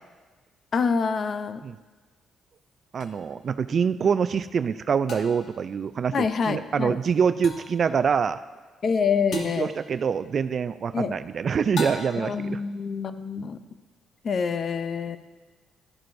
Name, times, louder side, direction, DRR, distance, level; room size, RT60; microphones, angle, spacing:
voice 1, 0.7-1.6 6.1-7.0 8.8-9.7 10.9-11.1 12.2-13.6 14.2-15.2, left 5 dB, 50° left, 11 dB, 0.5 m, -26 dB
voice 2, 2.9-8.4 9.3-12.6, right 6 dB, 50° right, 13 dB, 0.3 m, -25 dB
sound 1, 3.0-3.1 5.1-5.6 7.4-7.8 9.3-9.7 11.8-12.4, left 3 dB, 65° left, 1.2 m, -36 dB
12.0 x 11.0 x 2.6 m, 1.3 s
cardioid pair, 90°, 0 cm